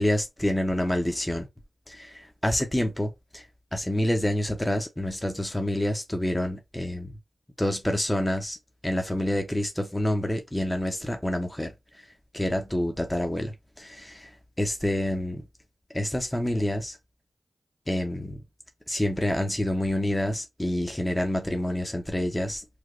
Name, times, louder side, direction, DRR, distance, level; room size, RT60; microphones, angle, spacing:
voice 1, 0.0-1.5 1.9-3.4 3.7-7.1 7.6-8.6 8.8-12.0 12.3-14.3 14.6-15.5 15.9-17.0 17.9-18.4 18.9-22.6, left 1 dB, 15° left, 0.9 m, -28 dB
3.4 x 2.1 x 3.6 m
cardioid pair, 40°, 0 cm